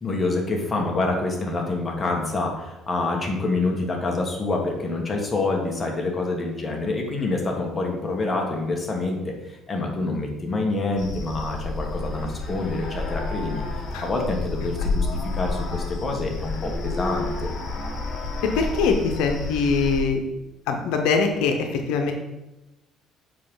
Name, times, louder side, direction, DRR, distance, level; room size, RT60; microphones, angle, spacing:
voice 1, 0.0-17.5, left 2 dB, 20° left, 0 dB, 1.4 m, -27 dB
sound 1, 11.0-20.0, left 3 dB, 45° left, 1.6 m, -30 dB
voice 2, 18.4-20.2 20.7-22.1, left 4 dB, 90° left, 4 dB, 0.8 m, -23 dB
7.5 x 5.0 x 3.8 m, 1.0 s
cardioid pair, 125°, 0 cm